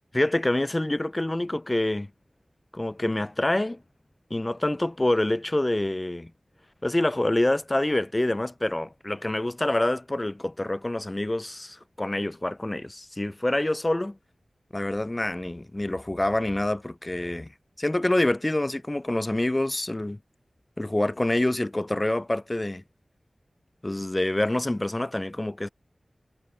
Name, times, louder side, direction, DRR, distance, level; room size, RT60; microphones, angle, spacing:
voice 1, 0.1-2.1 2.7-3.8 4.3-6.3 6.8-14.2 14.7-17.5 17.8-20.2 20.8-22.8 23.8-25.7, left 1 dB, 25° left, 0.4 m, -26 dB
wide cardioid pair, 75°, 0 cm